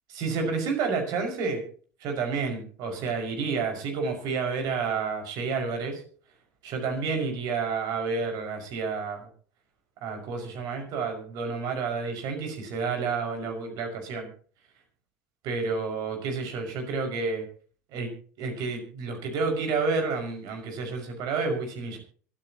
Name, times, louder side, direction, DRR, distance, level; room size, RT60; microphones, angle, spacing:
voice 1, 0.1-1.6 2.0-6.0 6.6-9.3 10.0-14.3 15.4-17.4 17.9-18.1 18.4-22.0, right 4 dB, 55° right, 4 dB, 5.8 m, -30 dB
25.0 x 9.3 x 3.0 m, 0.43 s
hypercardioid pair, 75°, 8 cm